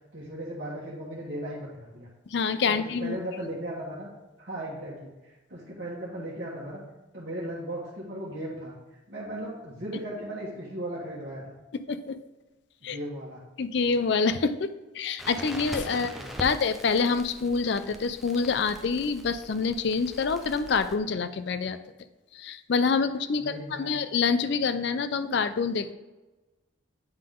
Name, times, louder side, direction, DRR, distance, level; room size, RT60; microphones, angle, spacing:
voice 1, 0.1-2.1 2.7-4.1 4.4-6.8 7.1-8.8 9.1-11.6 12.8-13.4 15.9-16.5 23.3-23.9, right 1 dB, 55° right, -9 dB, 1.4 m, -37 dB
voice 2, 2.3-3.2 11.9-12.2 12.8-13.0 13.6-16.1 16.4-21.8 22.3-25.9, left 5 dB, 60° left, 11 dB, 0.4 m, -26 dB
Crackle, 15.2-21.0, equal, ahead, 0.4 m, -42 dB
8.8 x 3.7 x 3.7 m, 1.1 s
head